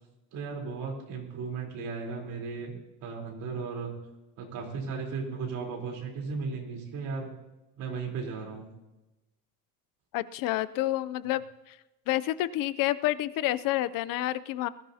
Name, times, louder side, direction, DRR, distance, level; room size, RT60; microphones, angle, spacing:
voice 1, 0.3-4.0 4.4-7.3 7.8-8.7, right 5 dB, 65° right, 0 dB, 3.8 m, -36 dB
voice 2, 10.1-11.8 12.1-14.7, left 15 dB, 65° left, 15 dB, 0.6 m, -29 dB
20.5 x 15.5 x 2.8 m, 0.98 s
cardioid pair, 170°, 36 cm